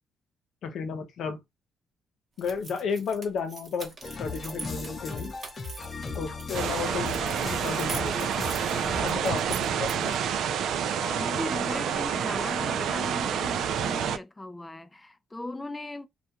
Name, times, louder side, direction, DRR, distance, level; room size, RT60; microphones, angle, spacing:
voice 1, 0.6-1.4 2.4-3.9 4.2-5.3 6.1-8.3 9.0-10.2, left 6 dB, 70° left, 0.6 m, -33 dB
sound 1, 2.4-6.5 7.0-10.2, right 4 dB, 40° right, 0.9 m, -43 dB
sound 2, 4.0-9.0, left 3 dB, 35° left, 0.7 m, -37 dB
sound 3, 6.5-14.2, right 8 dB, 75° right, 0.3 m, -28 dB
voice 2, 10.9-16.1, left 2 dB, 15° left, 0.4 m, -37 dB
2.3 x 2.2 x 2.8 m
cardioid pair, 90°, 0 cm